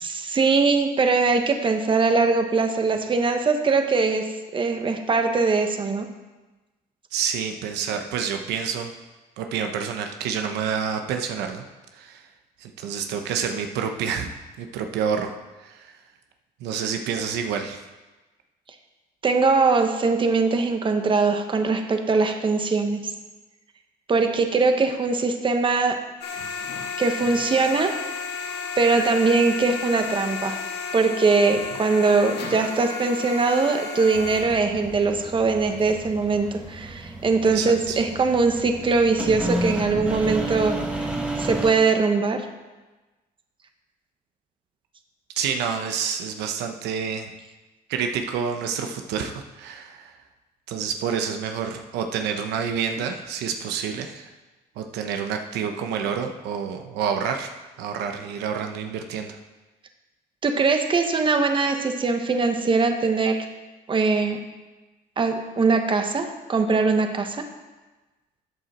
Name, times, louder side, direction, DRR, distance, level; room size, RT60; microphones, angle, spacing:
voice 1, 0.0-4.3 4.5-6.1 19.2-23.0 24.1-26.0 27.0-28.0 28.8-30.6 30.9-40.8 41.4-42.4 60.4-63.4 63.9-64.4 65.2-67.4, right 4 dB, 30° right, 6 dB, 1.2 m, -21 dB
voice 2, 7.1-8.9 9.4-11.6 11.9-12.3 12.6-15.3 15.6-15.9 16.6-17.8 37.5-38.0 45.4-47.3 47.9-50.2 50.7-54.3 54.8-57.5 57.8-59.4, right 7 dB, 85° right, 5 dB, 1.0 m, -28 dB
sound 1, 26.2-34.4, left 5 dB, 70° left, 2.4 m, -32 dB
sound 2, 34.1-41.7, right 1 dB, 5° right, 1.6 m, -32 dB
13.5 x 8.1 x 4.3 m, 1.2 s
cardioid pair, 110°, 17 cm